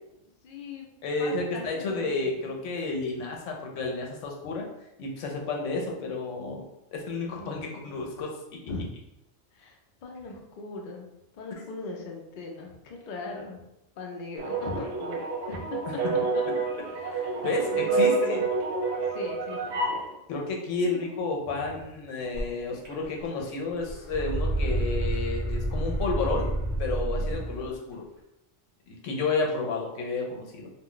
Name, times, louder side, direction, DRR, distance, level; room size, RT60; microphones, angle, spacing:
voice 1, 0.4-0.9 1.2-2.7 7.2-8.0 8.7-8.9 9.5-13.6 14.0-15.2 15.5-15.8 16.3-16.6 16.9-18.4 19.1-20.2 20.8-21.7 27.2-27.4, left 3 dB, 55° left, 1 dB, 0.5 m, -40 dB
voice 2, 1.0-4.7 5.0-6.7 6.9-8.3 17.4-18.4 20.3-26.5 26.8-28.0 28.9-30.7, left 3 dB, 85° left, 0 dB, 0.9 m, -31 dB
sound 1, 14.4-20.0, right 3 dB, 70° right, 0.9 m, -28 dB
sound 2, 22.4-22.5 22.8-23.4 23.7-27.7, right 1 dB, 25° right, 1.0 m, -29 dB
2.3 x 2.1 x 3.7 m, 0.88 s
omnidirectional pair, 1.2 m